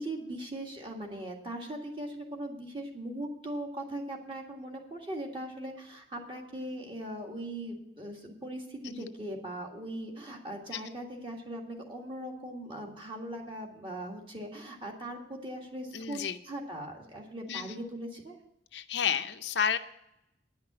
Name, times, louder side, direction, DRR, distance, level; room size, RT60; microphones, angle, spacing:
voice 1, 0.0-18.4, right 1 dB, 30° right, 1 dB, 1.8 m, -40 dB
voice 2, 15.9-16.4 17.5-17.8 18.7-19.8, left 7 dB, 75° left, 8 dB, 0.6 m, -31 dB
10.0 x 5.8 x 8.6 m, 0.81 s
head